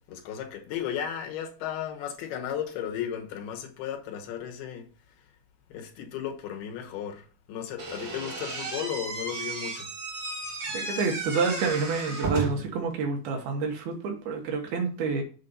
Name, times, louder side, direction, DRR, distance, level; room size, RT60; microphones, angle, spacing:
voice 1, 0.1-4.9 5.7-9.9, left 9 dB, 90° left, 3.1 m, -35 dB
Slam / Squeak, 7.8-12.8, right 3 dB, 30° right, 3.0 m, -34 dB
voice 2, 10.7-15.2, right 4 dB, 75° right, 3.2 m, -28 dB
7.4 x 3.9 x 5.4 m
omnidirectional pair, 4.5 m